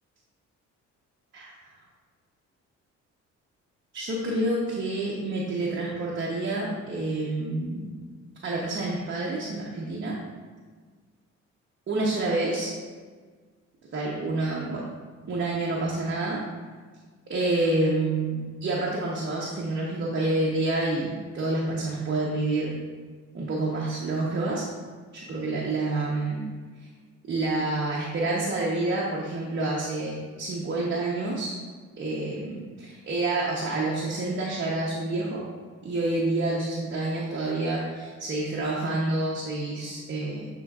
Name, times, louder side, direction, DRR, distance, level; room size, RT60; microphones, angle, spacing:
voice 1, 3.9-7.9 8.4-10.1 11.9-12.7 13.9-14.8 15.3-16.4 17.3-22.7 23.3-24.6 25.1-26.5 27.3-31.5 32.0-35.4 35.8-40.5, right 2 dB, 40° right, -4 dB, 1.0 m, -28 dB
10.0 x 3.8 x 2.4 m, 1.5 s
cardioid pair, 90°, 30 cm